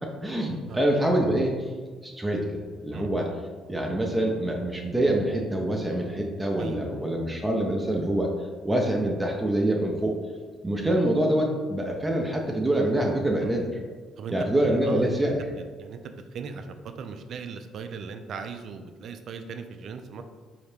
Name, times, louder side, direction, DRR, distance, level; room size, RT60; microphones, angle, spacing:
voice 1, 0.0-1.7 2.0-3.3 3.7-8.3 8.6-10.1 10.6-13.7 14.3-15.4, right 1 dB, 15° right, 0 dB, 0.6 m, -25 dB
voice 2, 6.6-7.1 13.4-13.5 14.2-14.4 14.7-16.0 16.3-20.2, right 5 dB, 60° right, 7 dB, 0.3 m, -38 dB
4.1 x 2.8 x 3.3 m, 1.5 s
hypercardioid pair, 55°, 0 cm